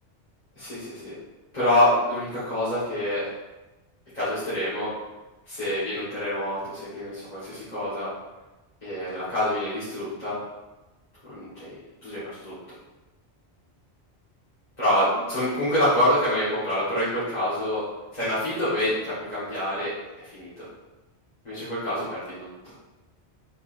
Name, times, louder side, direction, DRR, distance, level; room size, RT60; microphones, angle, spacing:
voice 1, 0.6-1.1 1.5-3.3 4.1-4.9 5.6-8.1 8.8-10.4 11.3-11.7 12.0-12.5 14.8-17.8 18.1-19.9 20.2-20.7 21.4-22.7, left 1 dB, 40° left, -15 dB, 1.6 m, -26 dB
4.0 x 3.9 x 2.6 m, 1.1 s
omnidirectional pair, 1.1 m